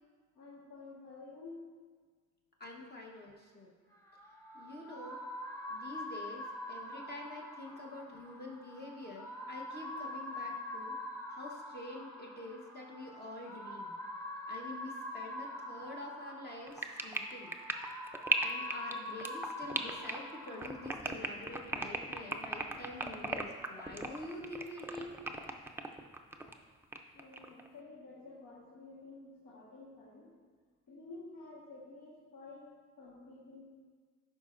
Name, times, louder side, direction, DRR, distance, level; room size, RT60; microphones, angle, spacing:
voice 1, 0.3-1.7 27.1-30.4 30.9-32.7 33.0-33.7, left 3 dB, 75° left, -8 dB, 1.5 m, -51 dB
voice 2, 2.6-3.7 4.5-5.2 5.7-11.0 11.3-13.9 14.5-17.6 18.4-25.2, left 1 dB, 35° left, -2 dB, 1.1 m, -47 dB
sound 1, 3.9-20.9, left 1 dB, 10° left, 1.0 m, -45 dB
sound 2, 16.7-26.5 26.9-27.7, right 2 dB, 10° right, 0.5 m, -36 dB
11.0 x 5.0 x 2.5 m, 1.5 s
cardioid pair, 90°, 30 cm